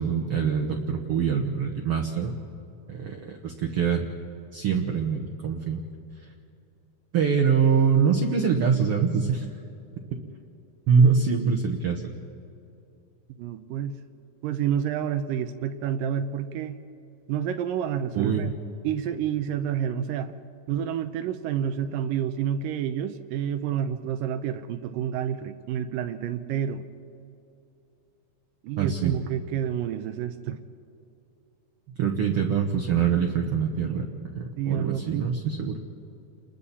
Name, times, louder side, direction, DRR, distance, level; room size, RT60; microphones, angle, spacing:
voice 1, 0.0-2.3 2.9-4.1 4.5-5.8 7.1-9.5 10.9-12.1 18.1-18.5 28.8-29.1 32.0-34.1 34.3-35.8, right 6 dB, 60° right, 1 dB, 1.6 m, -24 dB
voice 2, 13.4-14.0 14.4-16.8 17.3-18.5 18.8-20.3 20.7-26.8 28.6-30.6 34.6-35.3, right 9 dB, 75° right, 10 dB, 2.3 m, -29 dB
29.5 x 21.5 x 4.2 m, 2.8 s
omnidirectional pair, 4.2 m